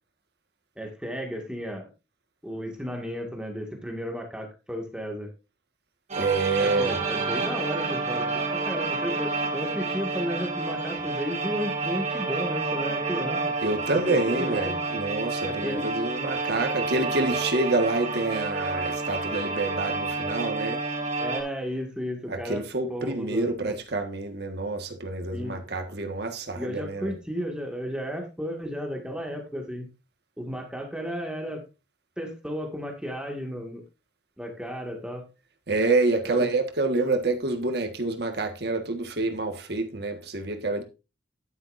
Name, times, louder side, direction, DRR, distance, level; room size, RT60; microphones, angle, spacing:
voice 1, 0.8-1.9 2.4-5.3 6.6-13.5 14.1-14.7 15.5-15.8 21.2-22.6 22.9-23.8 25.3-26.0 26.6-29.9 30.4-31.6 32.2-33.8 34.4-35.2 36.2-36.5, equal, 5° right, 1.9 m, -33 dB
sound 1, 6.1-21.4, right 3 dB, 40° right, 3.4 m, -29 dB
voice 2, 6.2-7.0 13.6-20.8 22.3-27.1 35.7-40.8, right 2 dB, 60° right, 1.6 m, -27 dB
11.0 x 9.9 x 2.6 m
head